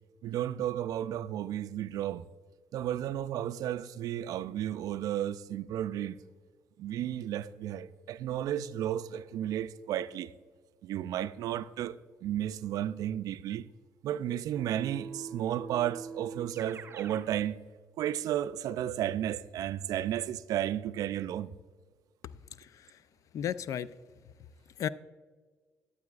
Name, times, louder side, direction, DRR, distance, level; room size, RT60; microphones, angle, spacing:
voice 1, 0.2-2.2 2.7-6.2 6.8-10.3 10.8-12.0 12.2-13.6 14.0-17.6 18.0-21.5, right 11 dB, 70° right, 15 dB, 0.3 m, -33 dB
Keyboard (musical), 14.6-17.3, right 5 dB, 40° right, 0.7 m, -44 dB
voice 2, 22.6-23.0 23.3-23.9 24.8-24.9, left 9 dB, 60° left, 16 dB, 0.3 m, -34 dB
11.5 x 8.2 x 2.4 m, 1.5 s
cardioid pair, 90°, 6 cm